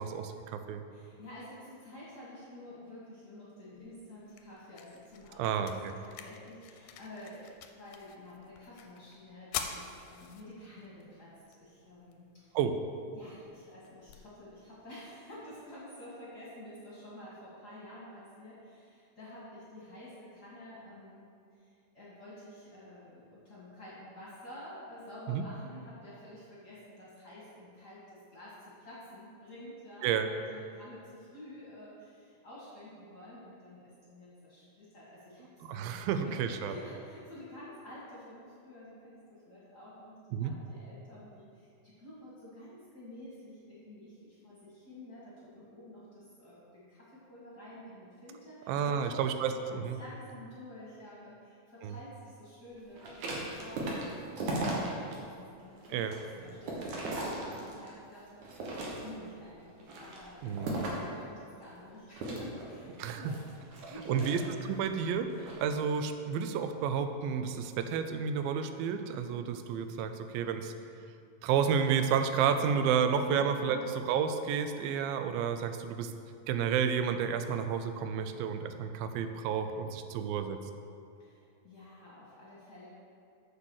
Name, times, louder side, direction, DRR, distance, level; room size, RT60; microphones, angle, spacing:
voice 1, 0.0-0.8 5.4-5.9 12.5-12.8 25.3-25.5 30.0-30.3 35.7-36.8 40.3-40.5 48.7-50.0 51.8-51.9 55.9-56.1 60.4-60.7 63.0-63.3 64.1-64.4 64.7-65.3 65.6-70.7 71.4-76.1 76.5-80.6, right 7 dB, 90° right, 8 dB, 2.4 m, -31 dB
voice 2, 0.9-12.5 13.1-49.2 49.6-55.3 55.6-64.4 65.1-65.3 73.2-73.9 81.2-82.9, left 1 dB, 40° left, -8 dB, 1.7 m, -49 dB
sound 1, 3.8-15.8, left 8 dB, 80° left, 2.1 m, -48 dB
sound 2, 53.0-55.2 55.6-58.0 58.4-59.3 59.8-61.1 62.1-64.8 65.3-65.6, right 2 dB, 65° right, 2.5 m, -37 dB
7.2 x 6.9 x 6.4 m, 2.5 s
omnidirectional pair, 4.1 m